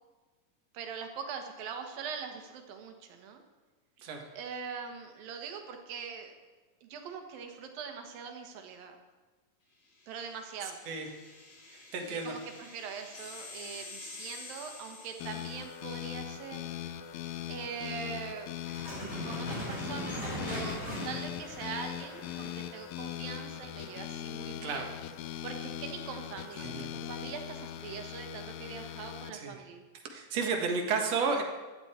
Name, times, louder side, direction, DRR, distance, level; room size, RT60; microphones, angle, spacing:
voice 1, 0.7-3.4 4.3-6.3 6.8-9.0 10.1-10.8 12.1-16.6 17.5-18.5 19.2-24.9 25.4-29.8, right 6 dB, 80° right, 5 dB, 3.1 m, -42 dB
sound 1, 10.0-16.0, left 3 dB, 60° left, 3.9 m, -49 dB
voice 2, 10.6-11.1 11.7-12.3 20.9-21.1 24.6-24.9 26.6-26.8 29.3-29.6 30.1-31.4, right 4 dB, 55° right, 3 dB, 2.3 m, -33 dB
sound 2, 15.2-29.3, left 11 dB, 80° left, 2.4 m, -40 dB
sound 3, 18.6-22.8, equal, 25° left, 5.3 m, -39 dB
15.5 x 12.5 x 4.4 m, 1.3 s
omnidirectional pair, 4.1 m